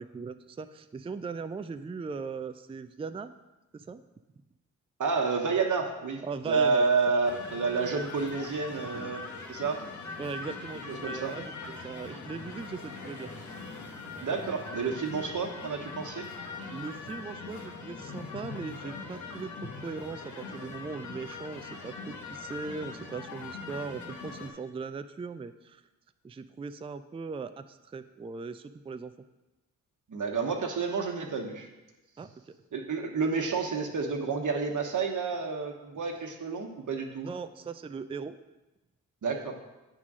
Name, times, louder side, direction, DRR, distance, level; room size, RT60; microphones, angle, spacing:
voice 1, 0.0-3.3 3.7-4.0 6.2-6.8 10.2-13.3 16.7-25.8 26.2-29.1 32.2-32.5 37.2-38.4, right 4 dB, 15° right, 10 dB, 0.4 m, -39 dB
voice 2, 5.0-9.8 10.9-11.3 14.2-16.2 30.1-31.7 32.7-37.3 39.2-39.5, right 4 dB, 50° right, 3 dB, 1.2 m, -30 dB
sound 1, 7.2-24.5, left 4 dB, 50° left, 1.3 m, -42 dB
8.1 x 3.7 x 6.1 m, 1.0 s
supercardioid pair, 45°, 38 cm